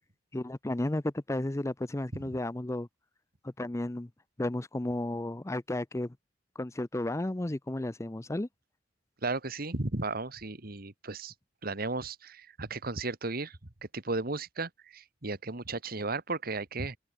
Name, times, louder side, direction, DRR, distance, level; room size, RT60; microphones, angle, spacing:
voice 1, 0.3-2.9 3.4-4.1 4.4-6.2 6.6-8.5, left 1 dB, 15° left, 0.5 m, -33 dB
voice 2, 9.2-11.3 11.6-13.6 13.9-17.0, right 3 dB, 50° right, 1.8 m, -35 dB
head